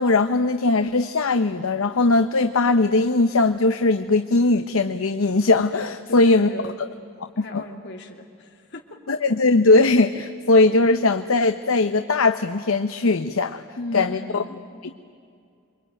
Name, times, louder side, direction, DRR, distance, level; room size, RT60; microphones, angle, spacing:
voice 1, 0.0-6.5 7.5-7.6 9.1-13.6 13.9-14.4, left 3 dB, 80° left, 9 dB, 0.8 m, -19 dB
voice 2, 6.1-6.8 7.3-9.2 13.7-14.7, left 2 dB, 60° left, 2 dB, 2.9 m, -36 dB
27.5 x 23.5 x 9.2 m, 2.3 s
head